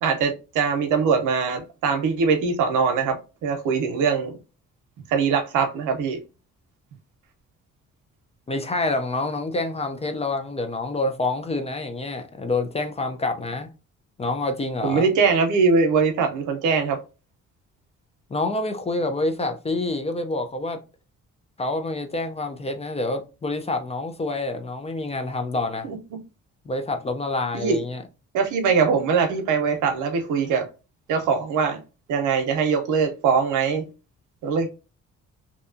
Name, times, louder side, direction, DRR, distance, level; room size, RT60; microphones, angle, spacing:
voice 1, 0.0-4.4 5.1-6.2 14.8-17.0 25.8-26.0 27.5-27.8 28.3-30.7 31.1-31.8 32.1-33.9 34.4-34.7, right 5 dB, 85° right, 0.7 m, -22 dB
voice 2, 8.5-13.7 14.2-15.1 18.3-20.8 21.6-25.9 26.7-28.0, left 2 dB, 20° left, 0.4 m, -27 dB
2.6 x 2.3 x 2.5 m
cardioid pair, 90°, 30 cm